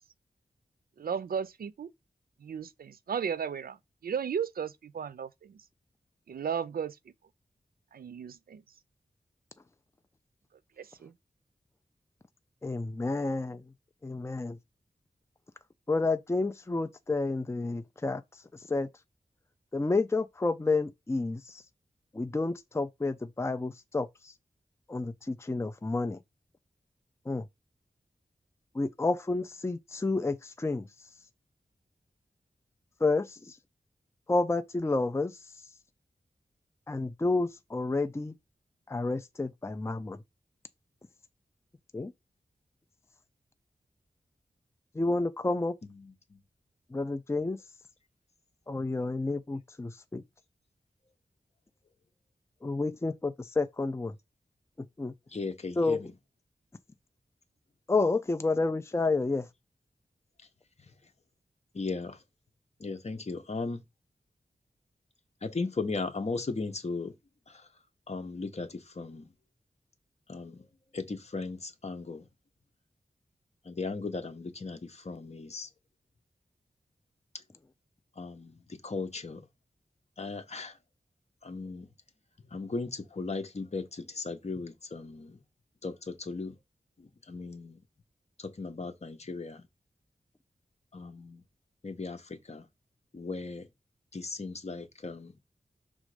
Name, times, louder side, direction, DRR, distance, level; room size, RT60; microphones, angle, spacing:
voice 1, 1.0-1.9 2.4-5.7 6.3-7.0 7.9-8.6 10.8-11.1, right 7 dB, 80° right, 0.5 m, -35 dB
voice 2, 12.6-13.7 14.0-14.6 15.9-18.9 19.7-21.6 22.1-24.3 24.9-26.2 27.3-27.5 28.7-30.9 33.0-33.6 34.3-35.4 36.9-38.4 38.9-40.2 41.9-42.1 44.9-45.8 46.9-47.6 48.7-50.2 52.6-54.2 54.8-55.1 55.8-56.0 57.9-59.5, left 3 dB, 20° left, 0.5 m, -30 dB
voice 3, 45.8-46.4 55.3-56.1 60.8-60.9 61.7-62.2 62.8-63.8 65.4-67.1 67.5-67.7 68.1-69.3 70.3-70.7 70.9-72.3 73.6-75.7 78.2-79.5 80.2-80.8 81.4-81.9 82.5-85.4 85.8-86.6 87.0-87.8 88.4-89.7 90.9-91.4 91.8-92.7 93.1-93.7 94.1-95.3, left 3 dB, 45° left, 1.2 m, -37 dB
6.3 x 3.7 x 5.0 m
wide cardioid pair, 95°, 15 cm